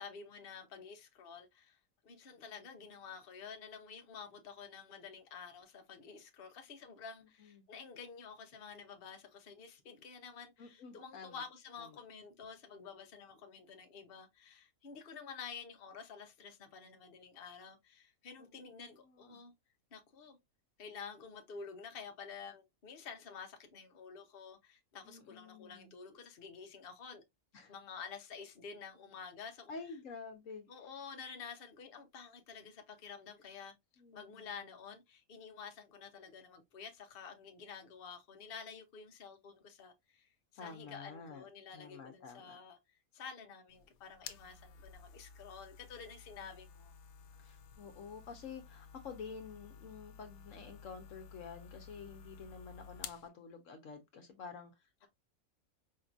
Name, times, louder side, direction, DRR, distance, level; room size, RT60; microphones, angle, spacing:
voice 1, 0.0-1.8 2.0-19.5 19.9-20.4 20.8-27.2 27.7-29.7 30.7-33.7 34.1-40.3 40.6-42.8 43.1-46.9, left 6 dB, 45° left, 1.0 m, -50 dB
voice 2, 7.2-7.6 10.6-11.4 11.8-11.9 18.4-19.4 25.0-25.9 27.5-27.7 29.7-30.7 34.0-34.4 40.6-41.5 41.7-42.6 47.4-55.1, left 5 dB, 65° left, 1.2 m, -50 dB
sound 1, 43.7-53.3, left 7 dB, 90° left, 1.1 m, -53 dB
5.2 x 2.8 x 2.4 m
omnidirectional pair, 1.5 m